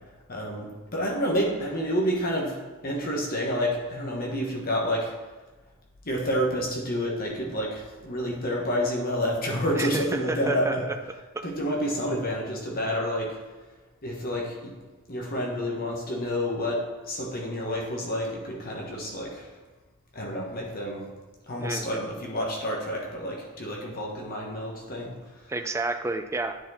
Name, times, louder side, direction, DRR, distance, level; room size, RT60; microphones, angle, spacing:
voice 1, 0.3-2.6 2.8-5.1 6.0-13.4 14.0-14.7 15.1-19.5 20.1-21.0 21.5-25.1, equal, 40° left, -2 dB, 1.3 m, -29 dB
voice 2, 9.8-10.9 21.6-22.1 25.5-26.6, right 2 dB, 10° right, 7 dB, 0.4 m, -30 dB
9.3 x 4.4 x 4.2 m, 1.2 s
head